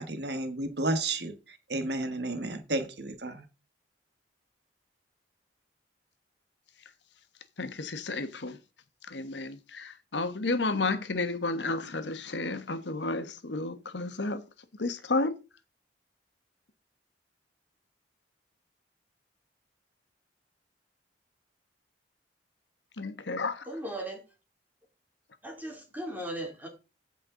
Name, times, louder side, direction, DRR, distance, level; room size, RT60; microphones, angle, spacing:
voice 1, 0.0-3.4, right 2 dB, 65° right, 1.4 m, -32 dB
voice 2, 7.6-8.6 9.1-14.4 14.8-15.4 23.0-23.6, left 3 dB, 80° left, 1.2 m, -32 dB
voice 3, 23.6-24.2 25.4-26.7, right 1 dB, 10° right, 2.9 m, -37 dB
14.5 x 5.4 x 3.8 m
head